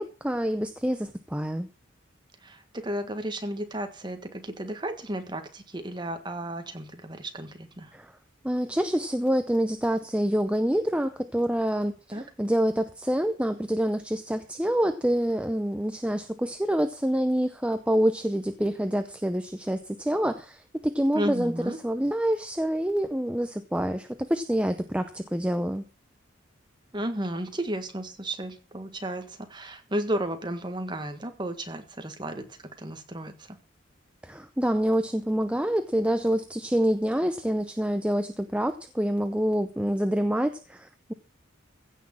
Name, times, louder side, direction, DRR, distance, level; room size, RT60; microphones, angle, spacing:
voice 1, 0.0-1.7 7.9-8.1 8.4-25.9 34.2-41.1, equal, 5° right, 9 dB, 0.6 m, -27 dB
voice 2, 2.4-7.9 12.1-12.3 21.1-21.8 26.9-33.6, right 1 dB, 20° right, 7 dB, 1.6 m, -33 dB
15.5 x 6.3 x 7.4 m, 0.37 s
head